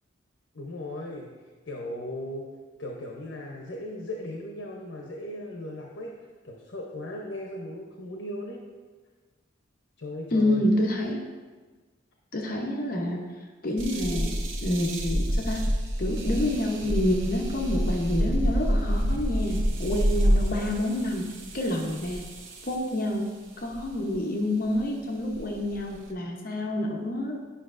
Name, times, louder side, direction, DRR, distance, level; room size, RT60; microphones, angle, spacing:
voice 1, 0.5-2.5 2.8-8.6 10.0-10.7, left 1 dB, 75° left, 0 dB, 0.8 m, -37 dB
voice 2, 10.3-11.2 12.3-13.2 13.6-14.3 14.6-15.6 16.0-21.3 21.5-22.2 22.7-23.3 23.6-27.4, left 1 dB, 45° left, 0 dB, 0.8 m, -28 dB
sound 1, 13.8-22.9 23.7-24.1 24.8-24.9 25.3-26.1, equal, 85° right, 0.8 m, -28 dB
10.0 x 5.5 x 2.5 m, 1.4 s
head